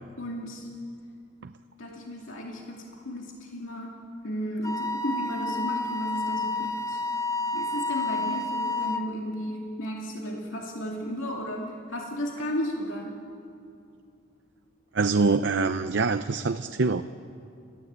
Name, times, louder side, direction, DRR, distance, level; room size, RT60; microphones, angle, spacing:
voice 1, 0.2-0.7 1.8-4.0 4.2-7.0 7.5-13.2, equal, 85° left, -1 dB, 2.5 m, -34 dB
Wind instrument woodwind instrument, 4.6-9.1, left 2 dB, 15° left, 0.9 m, -30 dB
voice 2, 14.9-17.0, right 4 dB, 65° right, 9 dB, 0.6 m, -24 dB
29.5 x 14.5 x 8.1 m, 2.4 s
head